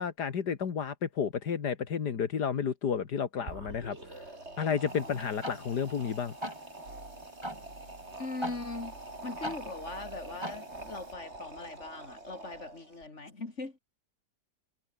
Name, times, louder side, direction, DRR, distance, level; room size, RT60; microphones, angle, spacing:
voice 1, 0.0-4.2 4.6-6.3, left 7 dB, 80° left, 2.3 m, -31 dB
sound 1, 3.4-13.0, right 2 dB, 40° right, 5.3 m, -46 dB
sound 2, 3.9-6.2 6.8-10.4, right 2 dB, 90° right, 8.0 m, -55 dB
voice 2, 4.9-5.2 8.2-8.9 9.2-13.8, left 3 dB, 45° left, 4.2 m, -40 dB
sound 3, 4.9-11.1, right 1 dB, 15° right, 6.0 m, -44 dB
omnidirectional pair, 1.7 m